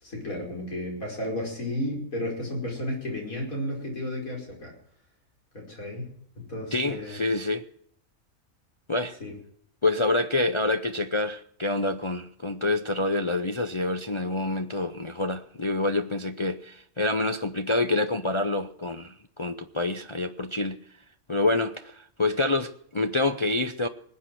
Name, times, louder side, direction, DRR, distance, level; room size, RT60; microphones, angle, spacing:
voice 1, 0.0-4.7 5.5-7.2 9.2-9.3, left 1 dB, 75° left, 5.5 m, -33 dB
voice 2, 6.7-7.6 8.9-9.2 9.8-20.8 21.3-23.9, left 2 dB, 40° left, 0.4 m, -27 dB
20.0 x 8.6 x 7.6 m
omnidirectional pair, 1.5 m